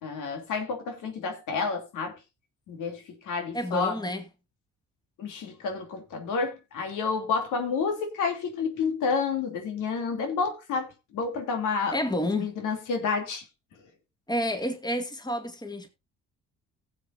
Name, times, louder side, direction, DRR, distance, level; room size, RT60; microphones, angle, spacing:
voice 1, 0.0-2.2 2.7-4.0 5.2-11.9 12.3-13.4, left 5 dB, 85° left, 2.9 m, -30 dB
voice 2, 3.5-4.2 11.9-12.5 14.3-15.9, equal, 15° left, 2.1 m, -29 dB
18.0 x 7.5 x 2.6 m
cardioid pair, 90°, 30 cm